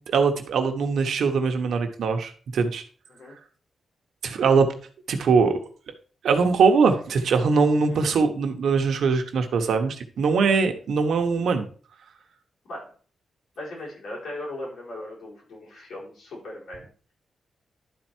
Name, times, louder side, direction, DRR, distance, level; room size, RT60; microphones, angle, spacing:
voice 1, 0.1-2.8 4.2-4.7 5.1-5.6 6.2-11.7, right 5 dB, 80° right, 6 dB, 1.2 m, -22 dB
voice 2, 13.6-16.9, left 1 dB, 85° left, -5 dB, 5.2 m, -38 dB
11.0 x 4.5 x 4.5 m, 0.42 s
wide cardioid pair, 115°, 0 cm